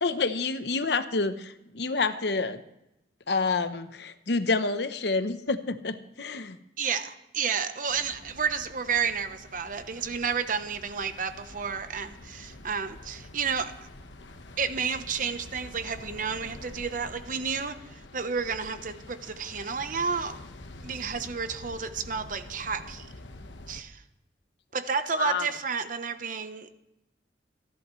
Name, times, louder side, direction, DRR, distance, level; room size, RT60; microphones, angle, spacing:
voice 1, 0.0-2.6 3.3-6.6 25.1-25.5, left 3 dB, 65° left, 10 dB, 0.9 m, -28 dB
voice 2, 6.8-13.9 14.6-20.4 20.8-23.1 23.7-24.0 24.7-26.7, right 6 dB, 45° right, 10 dB, 0.9 m, -31 dB
sound 1, 7.9-23.8, left 2 dB, 90° left, 1.2 m, -47 dB
28.0 x 11.0 x 3.2 m, 0.88 s
head